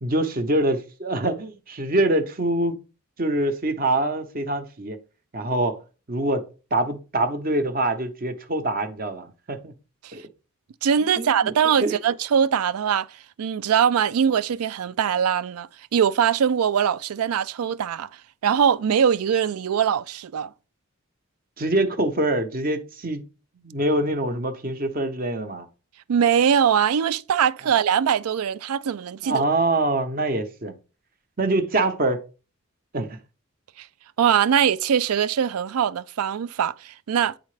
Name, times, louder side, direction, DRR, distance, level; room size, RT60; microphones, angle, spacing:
voice 1, 0.0-2.8 3.2-5.0 5.3-5.8 6.1-6.5 6.7-9.7 10.1-10.2 11.2-11.5 11.8-12.0 21.6-23.2 23.6-25.7 29.2-30.8 31.4-32.2 32.9-33.2, right 2 dB, 40° right, 0.8 m, -24 dB
voice 2, 10.8-18.1 18.4-20.5 26.1-29.4 33.8-33.9 34.2-37.4, right 8 dB, 90° right, 0.4 m, -22 dB
9.4 x 3.7 x 3.2 m
head